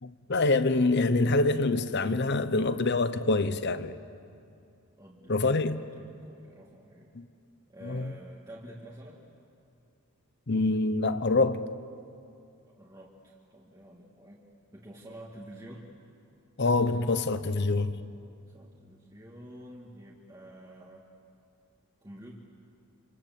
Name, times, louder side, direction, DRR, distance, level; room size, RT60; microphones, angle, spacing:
voice 1, 0.0-4.0 5.3-5.8 7.1-7.3 7.8-8.1 10.5-11.7 16.6-18.0, left 3 dB, 50° left, 0.9 m, -26 dB
voice 2, 5.0-7.1 7.7-9.2 12.8-14.4 14.7-15.9 18.4-21.1 22.0-22.3, right 1 dB, 15° right, 2.1 m, -49 dB
27.0 x 27.0 x 7.5 m
head